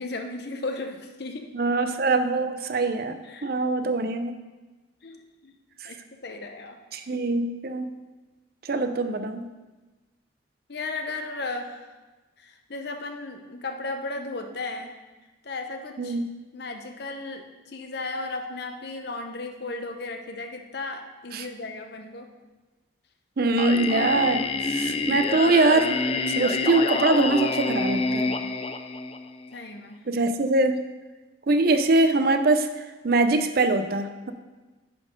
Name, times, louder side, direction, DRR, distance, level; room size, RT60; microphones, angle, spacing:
voice 1, 0.0-1.5 3.2-3.5 5.0-5.5 5.8-6.8 10.7-11.9 12.4-15.0 15.4-16.2 16.5-22.3 29.5-30.0, left 3 dB, 55° left, 5 dB, 0.7 m, -35 dB
voice 2, 1.5-4.3 5.8-5.9 6.9-7.9 8.6-9.5 16.0-16.2 21.3-21.5 23.4-26.0 26.3-28.4 30.1-30.9 31.5-34.3, right 2 dB, 50° right, 9 dB, 0.5 m, -23 dB
Singing, 23.6-29.5, left 3 dB, 30° left, 0.3 m, -27 dB
10.0 x 4.1 x 5.1 m, 1.2 s
head